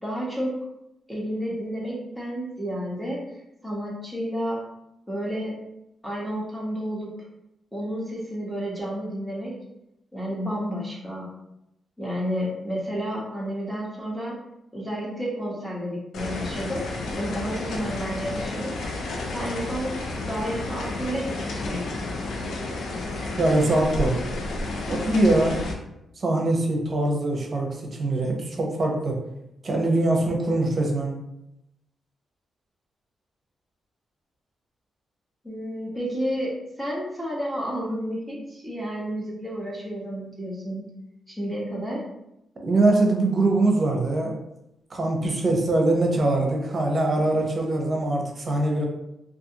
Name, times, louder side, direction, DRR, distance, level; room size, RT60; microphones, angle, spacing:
voice 1, 0.0-0.6 1.1-3.4 3.6-4.6 5.1-5.5 6.0-7.1 7.7-9.5 10.1-11.3 12.0-14.4 14.7-16.8 17.1-18.8 19.3-21.9 35.4-36.5 36.8-40.8 41.3-42.0, equal, ahead, -5 dB, 0.9 m, -31 dB
sound 1, 16.1-25.7, left 2 dB, 80° left, 0.4 m, -31 dB
voice 2, 23.4-24.2 24.9-25.6 26.2-29.2 29.6-31.2 42.6-44.3 44.9-48.9, right 2 dB, 45° right, 1 dB, 0.7 m, -22 dB
2.4 x 2.4 x 2.8 m, 0.85 s
cardioid pair, 75°, 0 cm